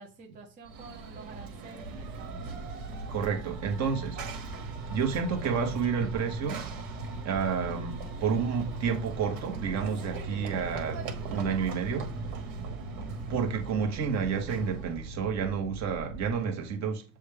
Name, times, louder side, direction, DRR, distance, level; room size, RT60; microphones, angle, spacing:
voice 1, 0.0-2.7 12.8-13.3, right 4 dB, 20° right, 0.5 m, -49 dB
Run / Train, 0.6-15.1, right 3 dB, 60° right, 1.5 m, -40 dB
sound 1, 1.9-16.4, right 2 dB, 5° left, 1.2 m, -43 dB
voice 2, 3.1-4.5 4.8-6.7 7.2-12.1 13.3-17.0, right 6 dB, 35° right, 1.1 m, -30 dB
6.9 x 2.3 x 3.3 m
supercardioid pair, 130°, 50 cm